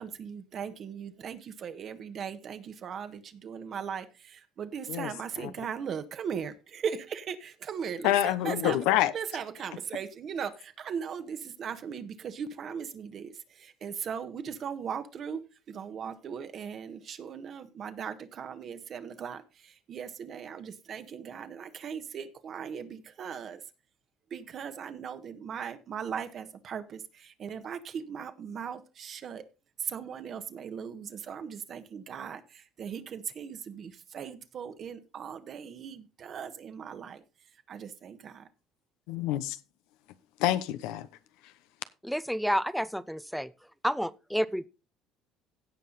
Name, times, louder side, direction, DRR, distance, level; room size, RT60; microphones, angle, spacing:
voice 1, 0.0-8.9 9.1-23.6 24.3-29.5 29.8-37.2 37.7-38.5, right 7 dB, 50° right, 1.4 m, -38 dB
voice 2, 8.0-9.1 39.1-39.6 40.4-41.1, left 13 dB, 80° left, 0.8 m, -26 dB
voice 3, 42.0-43.5 43.8-44.7, equal, ahead, 0.7 m, -30 dB
16.5 x 5.6 x 4.0 m
supercardioid pair, 75°, 0 cm